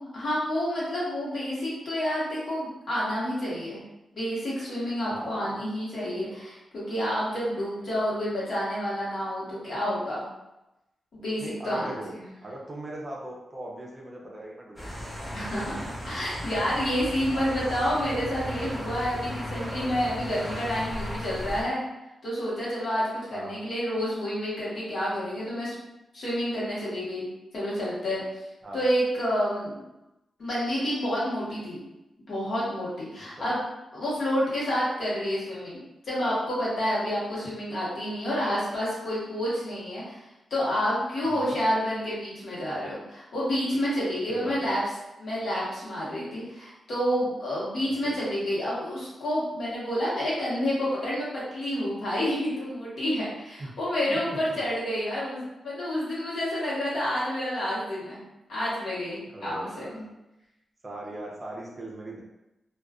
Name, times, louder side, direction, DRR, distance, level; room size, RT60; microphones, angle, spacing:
voice 1, 0.1-3.8 4.1-10.3 11.1-12.2 15.3-21.8 22.2-25.7 26.1-28.4 28.7-29.8 30.4-31.8 32.3-33.7 33.9-40.2 40.5-44.8 45.2-58.2 58.5-60.0, equal, 65° left, -7 dB, 1.0 m, -29 dB
voice 2, 5.1-5.5 11.4-12.1 12.4-15.3 17.3-17.6 23.3-23.6 28.6-28.9 33.4-33.5 41.2-41.6 44.3-44.7 47.9-48.2 53.6-53.7 54.1-54.6 59.3-60.1 60.8-62.2, right 1 dB, 30° right, -2 dB, 0.5 m, -40 dB
sound 1, 14.8-21.6, equal, 5° left, 0.9 m, -36 dB
2.4 x 2.2 x 2.3 m, 0.95 s
wide cardioid pair, 105°, 0 cm